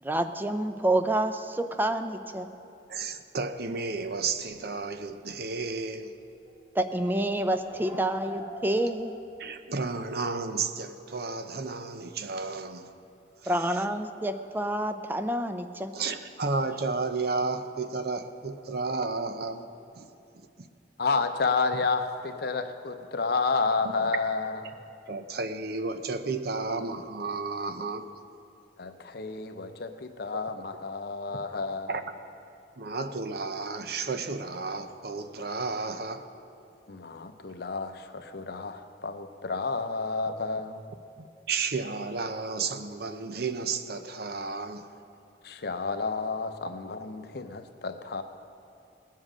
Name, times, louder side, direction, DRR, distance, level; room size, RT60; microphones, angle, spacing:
voice 1, 0.0-2.5 6.7-9.2 13.5-16.0, right 1 dB, 10° right, 0.5 m, -28 dB
voice 2, 2.9-6.1 9.4-12.9 13.4-13.5 15.9-19.7 19.9-20.1 20.3-20.7 25.1-28.1 31.9-32.0 32.8-36.3 41.5-44.9, right 4 dB, 60° right, 0.7 m, -32 dB
sound 1, 4.5-4.7 5.6-5.8 6.2-9.5, equal, 30° right, 2.3 m, -44 dB
voice 3, 21.0-24.7 28.8-32.0 36.9-40.8 45.4-48.2, left 4 dB, 60° left, 0.7 m, -30 dB
19.5 x 7.5 x 6.3 m
head